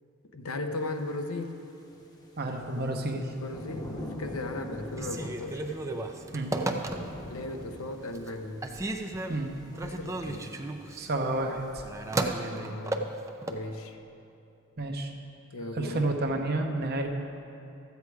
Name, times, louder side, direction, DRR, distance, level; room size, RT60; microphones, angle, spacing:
voice 1, 0.3-1.6 3.4-5.8 7.3-8.7 9.8-10.5 12.5-13.1 13.5-14.0 15.5-16.1, left 2 dB, 70° left, 6 dB, 0.8 m, -37 dB
sound 1, 1.9-12.4, left 1 dB, 20° left, 0.9 m, -45 dB
voice 2, 2.4-3.3 6.3-6.6 9.3-9.5 11.0-11.8 14.8-15.1 15.7-17.1, right 2 dB, 45° right, 3 dB, 0.9 m, -30 dB
Telephone, 4.9-7.4 7.8-8.3 8.6-13.6, right 2 dB, 15° right, 0.5 m, -34 dB
13.0 x 8.2 x 4.8 m, 2.7 s
head